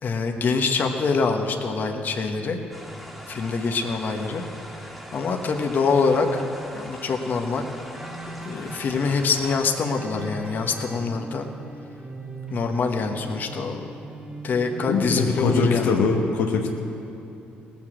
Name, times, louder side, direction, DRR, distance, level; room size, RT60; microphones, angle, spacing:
voice 1, 0.0-2.6 3.3-4.4 5.1-6.4 6.7-7.7 8.4-11.5 12.5-13.9 14.4-16.1, left 4 dB, 50° left, 3 dB, 1.2 m, -25 dB
sound 1, 2.7-9.6, equal, 5° right, 2.1 m, -42 dB
sound 2, 7.9-15.8, right 2 dB, 25° right, 2.0 m, -39 dB
voice 2, 14.9-16.7, left 4 dB, 85° left, 1 dB, 1.2 m, -22 dB
18.5 x 7.4 x 7.5 m, 2.8 s
supercardioid pair, 75°, 4 cm